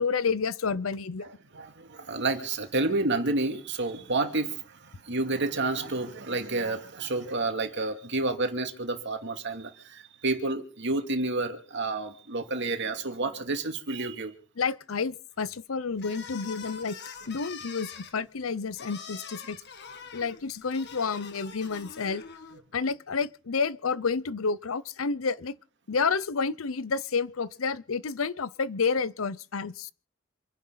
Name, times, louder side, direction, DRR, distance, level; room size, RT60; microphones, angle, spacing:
voice 1, 0.0-1.3 14.6-17.0 17.3-19.6 20.1-22.2 22.7-25.6 25.9-29.9, left 5 dB, 80° left, 0.7 m, -30 dB
voice 2, 1.2-14.3 22.5-22.6, right 2 dB, 60° right, 2.6 m, -30 dB
sound 1, 16.0-22.6, left 6 dB, 55° left, 1.8 m, -44 dB
27.5 x 10.5 x 4.0 m
head